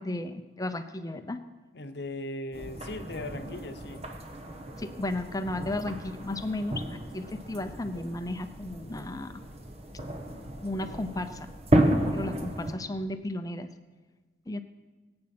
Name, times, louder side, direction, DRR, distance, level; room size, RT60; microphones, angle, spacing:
voice 1, 0.0-1.4 4.8-9.3 10.6-11.5 12.1-13.7 14.5-14.6, left 1 dB, 20° left, 9 dB, 0.7 m, -34 dB
voice 2, 1.7-4.0, left 1 dB, 65° left, 9 dB, 0.9 m, -38 dB
sound 1, 2.5-12.7, right 1 dB, 35° right, 1.3 m, -32 dB
19.5 x 8.8 x 6.1 m, 1.3 s
head